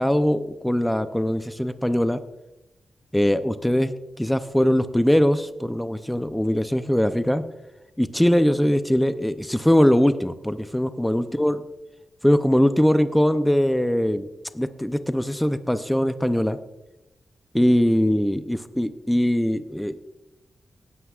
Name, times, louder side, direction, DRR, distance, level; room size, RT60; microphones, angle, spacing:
voice 1, 0.0-2.2 3.1-3.9 4.2-7.4 8.0-11.6 12.2-14.3 14.5-16.6 17.5-20.0, equal, 5° left, 10 dB, 0.5 m, -21 dB
17.5 x 9.5 x 2.4 m, 0.92 s
cardioid pair, 90°, 0 cm